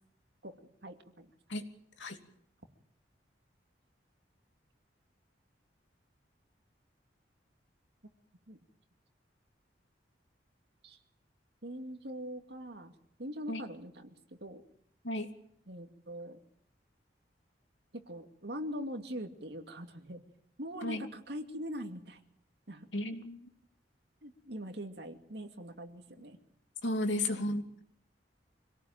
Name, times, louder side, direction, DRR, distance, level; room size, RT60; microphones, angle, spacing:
voice 1, 0.4-1.3 8.5-8.6 10.8-11.0 11.6-12.9 13.2-14.1 14.4-14.6 15.7-16.4 17.9-20.2 20.6-22.2 22.7-23.1 24.2-26.4 27.3-27.4, equal, 60° right, 5 dB, 2.6 m, -42 dB
voice 2, 22.9-23.5 26.8-27.8, left 1 dB, 85° left, 6 dB, 2.9 m, -34 dB
26.0 x 18.0 x 9.1 m, 0.69 s
head